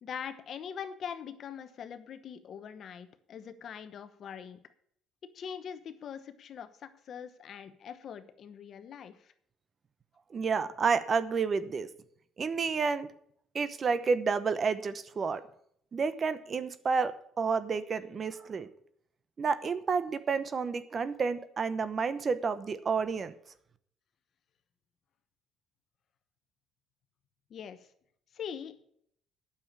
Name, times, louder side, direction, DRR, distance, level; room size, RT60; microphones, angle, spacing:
voice 1, 0.0-4.6 5.2-9.3 27.5-27.8 28.3-28.8, left 7 dB, 55° left, 11 dB, 1.1 m, -42 dB
voice 2, 10.3-11.9 12.4-13.1 13.5-15.4 15.9-18.7 19.4-23.3, right 5 dB, 40° right, 14 dB, 0.9 m, -30 dB
9.2 x 7.0 x 8.1 m, 0.68 s
cardioid pair, 95°, 0 cm